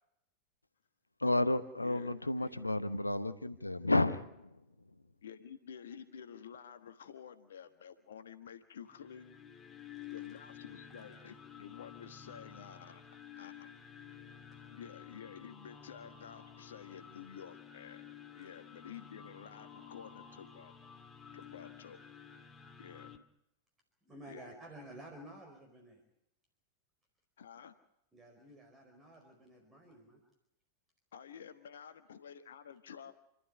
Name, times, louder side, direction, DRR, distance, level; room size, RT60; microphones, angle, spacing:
voice 1, 1.2-4.5, left 2 dB, 85° left, 1.0 m, -31 dB
voice 2, 1.8-2.1 5.2-9.4 10.1-13.0 13.4-13.7 14.7-18.0 18.3-20.7 21.3-22.0 22.8-23.1 24.3-24.5 27.4-27.7 31.1-33.1, left 8 dB, 65° left, 1.3 m, -51 dB
sound 1, 8.9-23.2, left 8 dB, 15° left, 2.2 m, -52 dB
voice 3, 24.0-26.0 28.1-30.2, right 1 dB, 15° right, 4.6 m, -53 dB
29.0 x 12.5 x 9.4 m
figure-of-eight pair, 90°, 0 cm